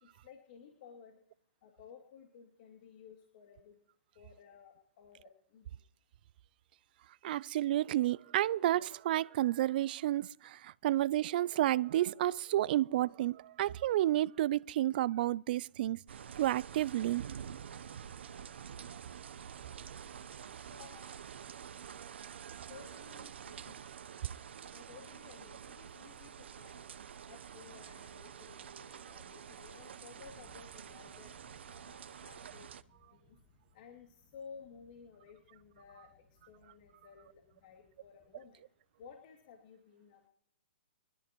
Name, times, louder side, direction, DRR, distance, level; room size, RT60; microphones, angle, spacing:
voice 1, 0.0-1.2 1.6-3.8 4.1-5.8 20.7-21.2 22.7-23.8 24.7-26.8 27.3-31.3 31.7-32.7 33.1-33.4 33.7-38.6 39.0-40.3, left 6 dB, 50° left, 2.6 m, -55 dB
voice 2, 7.2-16.0 16.4-17.2 18.9-19.0 22.0-22.7, right 14 dB, 50° right, 0.4 m, -31 dB
sound 1, 16.1-32.8, right 8 dB, 70° right, 0.8 m, -48 dB
sound 2, 30.2-39.6, left 2 dB, 20° left, 7.5 m, -68 dB
24.0 x 13.5 x 3.0 m
hypercardioid pair, 135°, 6 cm